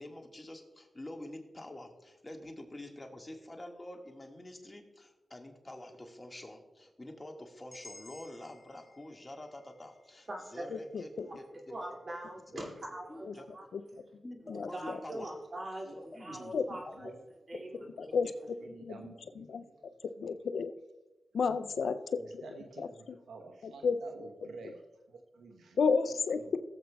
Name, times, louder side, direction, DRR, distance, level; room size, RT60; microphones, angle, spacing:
voice 1, 0.0-11.8 12.5-13.5 14.2-15.3 15.9-16.4 16.8-16.9 17.8-18.3, left 1 dB, 30° left, 3 dB, 1.7 m, -47 dB
sound 1, 7.7-11.7, left 2 dB, 45° left, 1.5 m, -57 dB
voice 2, 10.3-10.7 11.7-13.7 14.7-17.1 17.5-17.9, right 1 dB, 50° right, 0 dB, 2.4 m, -42 dB
voice 3, 10.9-11.3 13.2-13.3 13.7-13.8 14.5-15.0 16.5-16.6 18.0-18.3 18.8-19.0 19.4-19.6 20.2-20.7 21.3-22.4 22.8-22.9 23.6-24.0 25.8-26.6, left 5 dB, 80° left, 11 dB, 0.4 m, -31 dB
voice 4, 15.8-17.2 17.5-17.7 18.1-18.2 18.6-19.8 21.4-24.8 25.1-25.8 26.4-26.6, right 4 dB, 90° right, 3 dB, 1.0 m, -51 dB
16.5 x 7.8 x 2.3 m, 1.1 s
cardioid pair, 45°, 0 cm